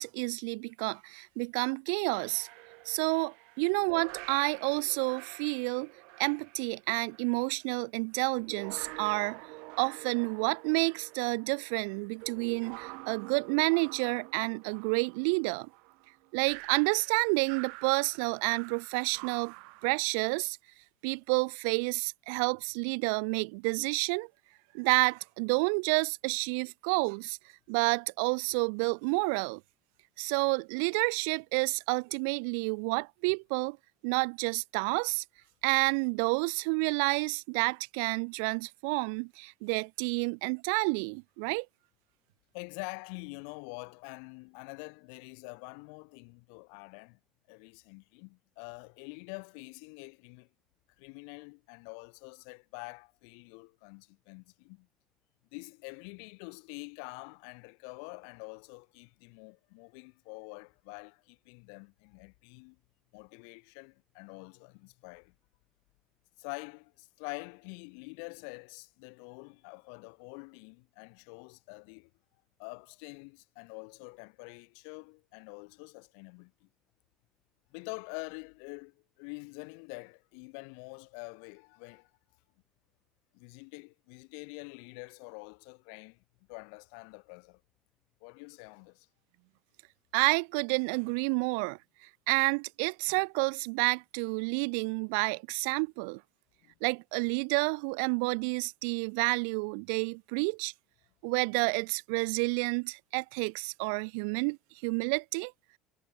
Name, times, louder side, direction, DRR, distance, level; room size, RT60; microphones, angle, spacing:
voice 1, 0.0-2.5 2.8-5.9 6.2-9.4 9.8-15.7 16.3-19.5 19.8-20.6 21.0-24.3 24.7-27.4 27.7-29.6 30.2-33.8 34.0-35.2 35.6-41.7 90.1-91.8 92.3-96.2 96.8-100.7 101.2-104.6 104.8-105.5, right 36 dB, 90° right, 1.1 m, -29 dB
sound 1, 2.1-7.5 8.2-19.9, right 30 dB, 75° right, 2.2 m, -48 dB
voice 2, 42.5-47.2 47.5-50.5 51.0-54.9 55.5-62.8 63.1-65.3 66.4-72.1 72.6-76.7 77.7-82.1 83.3-86.2 86.5-87.6 88.2-89.1 96.6-96.7, left 40 dB or more, 80° left, 1.6 m, -46 dB
cardioid pair, 165°, 0 cm